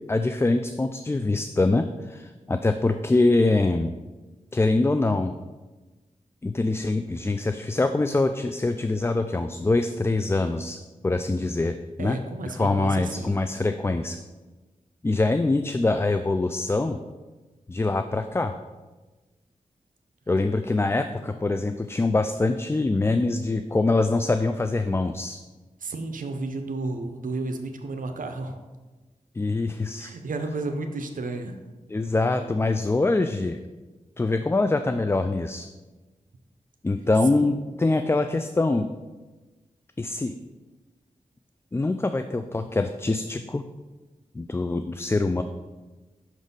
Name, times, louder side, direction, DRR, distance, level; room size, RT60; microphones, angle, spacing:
voice 1, 0.1-3.9 4.5-5.3 6.4-10.8 11.0-12.2 12.5-14.2 15.0-17.0 17.7-18.5 20.3-25.4 29.4-30.1 31.9-33.6 34.2-35.7 36.8-38.9 40.0-40.3 41.7-43.6 44.3-45.4, left 2 dB, 20° left, 8 dB, 0.3 m, -24 dB
voice 2, 12.0-13.4 25.8-28.6 30.0-31.6 37.3-37.6, right 3 dB, 75° right, 6 dB, 0.6 m, -32 dB
6.1 x 4.0 x 5.3 m, 1.2 s
cardioid pair, 50°, 14 cm